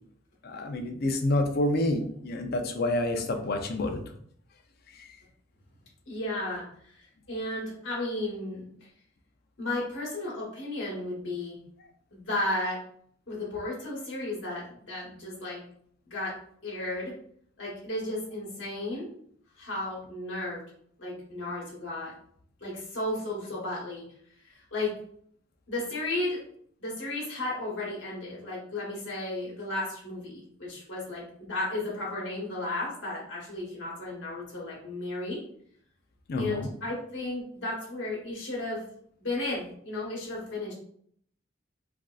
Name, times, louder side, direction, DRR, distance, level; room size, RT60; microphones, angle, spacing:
voice 1, 0.4-4.2 4.9-5.2 36.3-36.7, left 1 dB, 55° left, 5 dB, 0.5 m, -28 dB
voice 2, 6.1-8.7 9.6-11.6 12.1-12.8 13.3-15.6 16.1-16.4 16.6-17.1 17.6-19.1 19.6-20.6 21.0-22.1 22.6-24.0 24.4-24.9 25.7-26.4 26.8-35.4 36.4-38.8 39.2-40.7, left 2 dB, 70° left, -4 dB, 1.1 m, -34 dB
3.4 x 2.5 x 2.3 m, 0.64 s
head